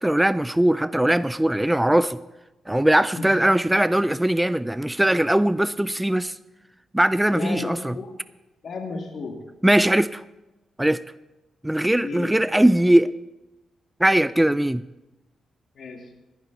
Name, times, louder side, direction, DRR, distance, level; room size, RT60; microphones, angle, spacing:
voice 1, 0.0-2.2 2.7-6.4 6.9-7.9 9.6-10.2 10.8-11.0 11.6-13.2 14.0-14.8, right 1 dB, 10° right, 0.3 m, -20 dB
voice 2, 7.3-8.1 8.6-9.4 12.0-12.4 15.7-16.1, left 4 dB, 60° left, 2.4 m, -33 dB
18.0 x 11.0 x 4.1 m
cardioid pair, 80°, 0 cm